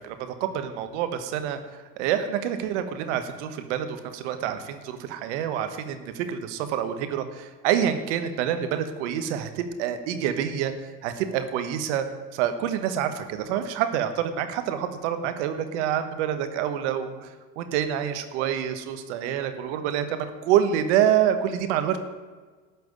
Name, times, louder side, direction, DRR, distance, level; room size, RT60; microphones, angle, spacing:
voice 1, 0.0-1.6 2.0-10.7 11.0-12.1 12.3-17.3 17.6-22.0, right 9 dB, 85° right, 9 dB, 1.2 m, -27 dB
12.5 x 5.9 x 8.8 m, 1.4 s
supercardioid pair, 80°, 34 cm